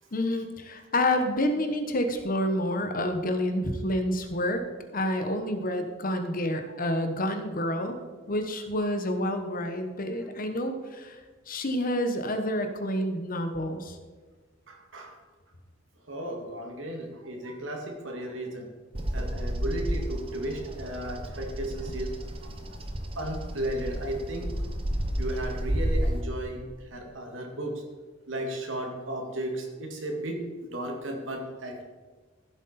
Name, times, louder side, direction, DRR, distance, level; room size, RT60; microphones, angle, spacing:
voice 1, 0.1-4.6 4.9-8.0 8.3-11.2 11.5-14.0, left 1 dB, 45° left, 7 dB, 1.1 m, -28 dB
voice 2, 14.7-15.2 16.1-18.7 19.1-22.8 23.2-24.6 25.2-27.8 28.3-31.8, right 1 dB, 75° right, 1 dB, 2.2 m, -35 dB
Bird vocalization bird call bird song, 18.9-26.2, equal, 30° right, 1.0 m, -31 dB
15.0 x 7.8 x 4.3 m, 1.4 s
head